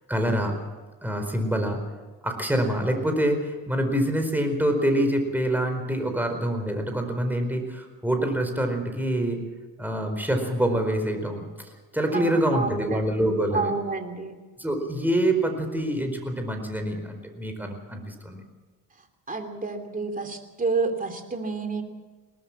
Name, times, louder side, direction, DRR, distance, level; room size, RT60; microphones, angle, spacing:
voice 1, 0.1-0.5 1.0-1.8 2.2-9.4 9.8-13.7 14.6-18.4, right 1 dB, 5° right, 5 dB, 4.5 m, -26 dB
voice 2, 12.1-13.0 13.5-14.3 19.3-21.8, right 4 dB, 20° right, 5 dB, 3.2 m, -29 dB
22.0 x 18.5 x 7.3 m, 1.3 s
cardioid pair, 120°, 37 cm